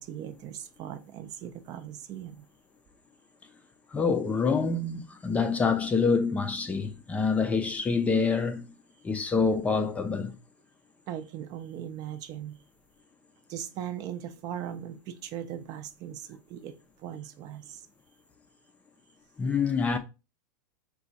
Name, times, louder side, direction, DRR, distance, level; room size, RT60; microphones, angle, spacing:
voice 1, 0.0-2.5 11.1-12.6 13.5-17.9, right 10 dB, 40° right, 0.5 m, -39 dB
voice 2, 3.9-8.7 9.0-10.4 19.4-20.0, left 5 dB, 15° left, 0.5 m, -26 dB
4.8 x 2.3 x 4.0 m
supercardioid pair, 135°, 10 cm